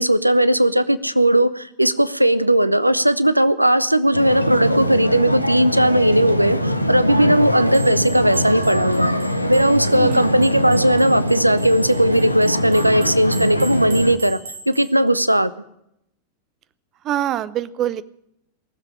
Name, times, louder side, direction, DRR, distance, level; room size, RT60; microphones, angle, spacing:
voice 1, 0.0-9.1 9.5-14.4 14.7-15.5, right 1 dB, 90° right, 16 dB, 0.6 m, -17 dB
sound 1, 4.1-14.2, equal, 90° left, 0.9 m, -23 dB
sound 2, 7.7-14.9, right 4 dB, 65° right, 1.6 m, -40 dB
voice 2, 17.0-18.0, right 11 dB, 35° right, 18 dB, 0.6 m, -24 dB
19.0 x 7.5 x 9.9 m, 0.77 s
figure-of-eight pair, 90°, 0 cm